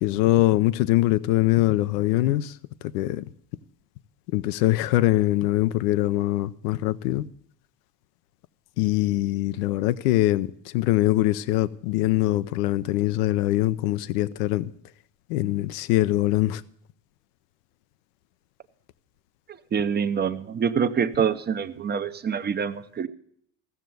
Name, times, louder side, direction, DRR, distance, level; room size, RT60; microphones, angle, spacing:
voice 1, 0.0-2.6 2.9-3.2 4.3-7.3 8.8-14.7 15.3-16.6, left 16 dB, 90° left, 0.7 m, -23 dB
voice 2, 19.7-23.1, right 7 dB, 20° right, 0.6 m, -25 dB
15.5 x 6.8 x 7.6 m
supercardioid pair, 130°, 46 cm